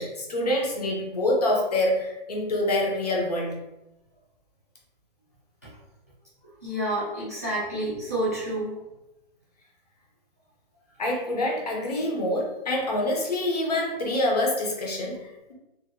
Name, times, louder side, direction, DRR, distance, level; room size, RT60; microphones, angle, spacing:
voice 1, 0.0-3.5 11.0-15.5, left 1 dB, 45° left, -1 dB, 0.7 m, -26 dB
voice 2, 6.6-8.7, right 1 dB, 15° right, -12 dB, 0.4 m, -29 dB
2.8 x 2.6 x 2.6 m, 0.94 s
hypercardioid pair, 180°, 29 cm